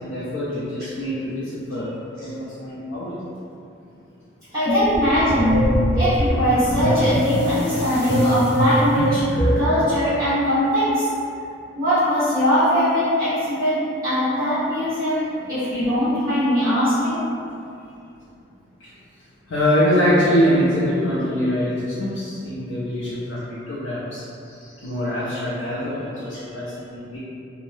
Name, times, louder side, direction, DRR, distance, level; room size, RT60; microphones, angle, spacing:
voice 1, 0.0-1.9 2.2-3.2 19.5-27.2, equal, 85° left, -9 dB, 0.5 m, -24 dB
voice 2, 4.5-5.7 6.0-9.2 9.5-11.1 11.7-13.8 14.0-17.2, equal, 20° right, -18 dB, 1.1 m, -21 dB
sound 1, 4.7-9.8, equal, 60° left, 0.8 m, -22 dB
2.6 x 2.0 x 3.2 m, 2.5 s
head